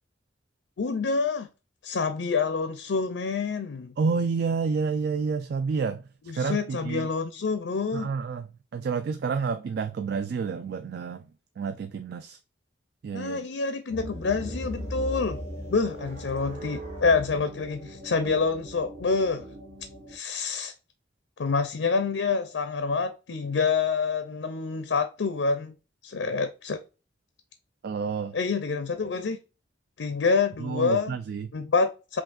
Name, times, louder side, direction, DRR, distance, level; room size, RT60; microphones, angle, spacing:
voice 1, 0.8-1.5 1.8-3.9 6.3-8.1 13.1-15.4 15.7-19.5 20.1-20.7 21.4-25.7 26.0-26.8 28.3-29.4 30.0-31.2 31.5-32.2, left 4 dB, 85° left, 0.5 m, -27 dB
voice 2, 4.0-6.0 6.3-7.1 7.9-8.5 8.7-11.2 11.6-12.4 13.0-13.5 27.8-28.4 30.6-31.5, right 5 dB, 60° right, 0.3 m, -29 dB
sound 1, 13.9-20.2, equal, 40° right, 1.4 m, -38 dB
5.8 x 2.4 x 2.5 m
head